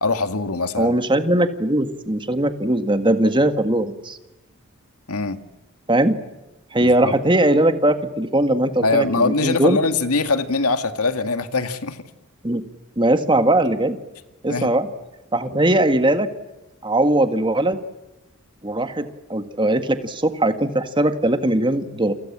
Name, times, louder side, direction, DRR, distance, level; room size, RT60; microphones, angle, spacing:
voice 1, 0.0-1.0 5.1-5.4 6.8-7.1 8.8-12.0 14.5-14.7 15.5-15.6, left 3 dB, 90° left, 9 dB, 2.1 m, -22 dB
voice 2, 0.8-4.2 5.9-6.2 6.7-9.8 12.4-12.6 13.0-14.0 14.4-14.9 15.3-16.3 16.8-17.8 18.6-22.1, right 1 dB, 20° right, 8 dB, 1.8 m, -20 dB
29.5 x 25.5 x 7.5 m, 1.0 s
head